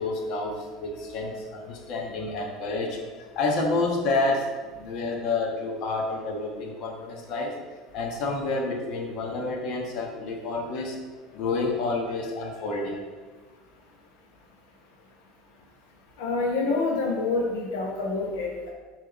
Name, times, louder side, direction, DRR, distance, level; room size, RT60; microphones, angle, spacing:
voice 1, 0.0-7.5 7.9-11.0 11.3-13.0, left 3 dB, 60° left, 1 dB, 1.4 m, -29 dB
voice 2, 16.2-18.7, left 3 dB, 90° left, -2 dB, 1.0 m, -27 dB
6.7 x 3.6 x 5.2 m, 1.4 s
supercardioid pair, 115°, 0 cm